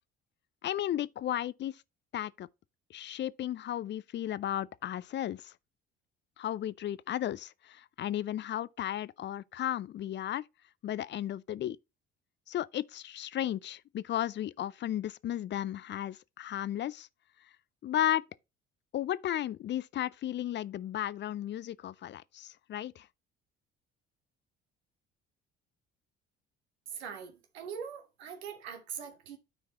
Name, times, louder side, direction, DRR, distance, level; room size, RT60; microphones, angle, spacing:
voice 1, 0.6-1.8 2.1-2.5 2.9-5.5 6.4-10.5 10.8-11.8 12.5-17.1 17.8-18.3 18.9-23.1, left 12 dB, 35° left, 0.5 m, -34 dB
voice 2, 26.9-29.4, right 7 dB, 75° right, 1.1 m, -42 dB
12.5 x 4.7 x 2.9 m
figure-of-eight pair, 50°, 32 cm